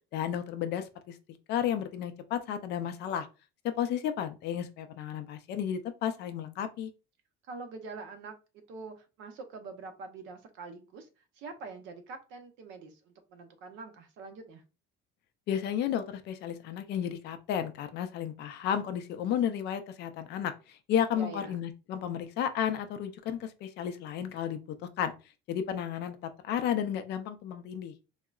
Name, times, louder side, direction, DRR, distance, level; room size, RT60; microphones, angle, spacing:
voice 1, 0.1-1.2 1.5-3.3 3.6-6.9 15.5-25.1 25.5-26.2 26.4-27.9, left 9 dB, 55° left, 0.4 m, -32 dB
voice 2, 7.4-11.1 11.3-14.6 21.1-21.6, right 4 dB, 65° right, 0.7 m, -45 dB
3.7 x 2.0 x 2.3 m
cardioid pair, 160°, 21 cm